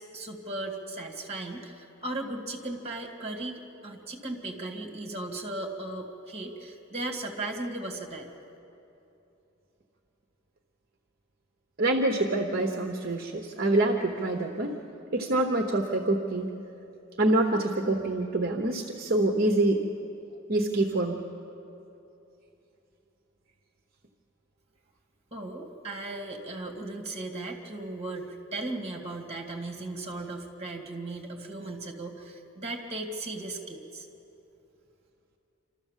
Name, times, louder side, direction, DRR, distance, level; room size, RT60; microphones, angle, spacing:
voice 1, 0.0-8.3 25.3-34.1, right 2 dB, 30° right, 3 dB, 2.2 m, -37 dB
voice 2, 11.8-14.7 15.1-16.5 17.2-19.8 20.5-21.2, right 2 dB, 50° right, 3 dB, 1.0 m, -26 dB
27.5 x 13.5 x 7.4 m, 2.9 s
head